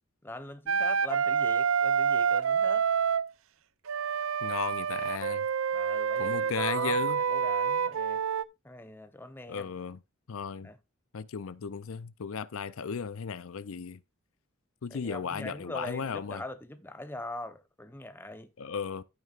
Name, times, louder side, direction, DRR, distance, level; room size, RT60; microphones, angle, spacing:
voice 1, 0.2-2.9 5.7-7.0 7.3-8.2 8.6-9.7 10.6-10.8 14.9-18.5, left 1 dB, 10° left, 0.9 m, -42 dB
Wind instrument woodwind instrument, 0.7-3.3 3.9-8.4, right 6 dB, 70° right, 0.6 m, -28 dB
voice 2, 4.4-5.5 6.2-7.2 9.5-10.0 10.3-10.7 11.1-14.0 14.8-16.4 18.6-19.0, left 6 dB, 70° left, 0.5 m, -35 dB
13.0 x 9.0 x 2.5 m
head